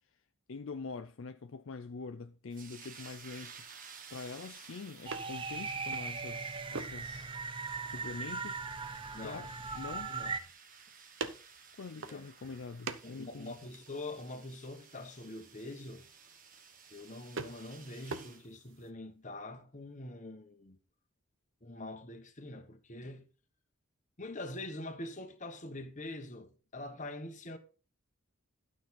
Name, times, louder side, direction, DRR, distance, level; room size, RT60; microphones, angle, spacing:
voice 1, 0.5-3.6 4.1-7.3 7.8-8.6 9.2-10.2 11.8-13.6, left 4 dB, 60° left, 0.5 m, -44 dB
sound 1, 2.5-18.4, right 6 dB, 40° right, 1.2 m, -55 dB
sound 2, 3.3-18.9, right 4 dB, 60° right, 0.8 m, -49 dB
sound 3, 5.1-10.4, right 4 dB, 25° right, 0.5 m, -39 dB
voice 2, 9.1-9.5 9.9-10.3 12.0-12.3 13.0-16.1 16.9-20.8 21.6-23.3 24.2-27.6, left 2 dB, 35° left, 1.3 m, -44 dB
12.0 x 6.1 x 4.2 m
head